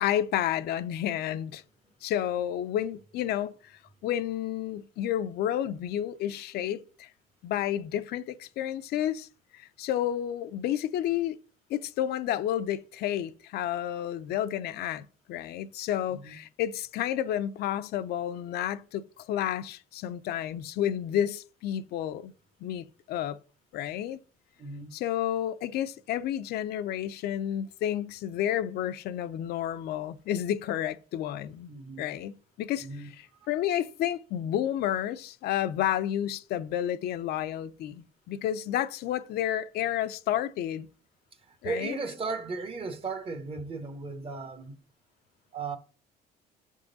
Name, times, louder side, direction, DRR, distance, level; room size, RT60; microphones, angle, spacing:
voice 1, 0.0-1.6 2.0-7.1 7.4-9.3 9.5-11.4 11.7-22.3 22.6-23.4 23.7-24.2 24.9-31.7 32.0-40.9 41.6-42.0, left 11 dB, 70° left, 0.5 m, -31 dB
voice 2, 24.6-24.9 31.7-32.0 32.8-33.1 41.5-44.7 45.5-45.8, right 4 dB, 35° right, 0.9 m, -36 dB
6.7 x 3.6 x 4.0 m
cardioid pair, 110°, 17 cm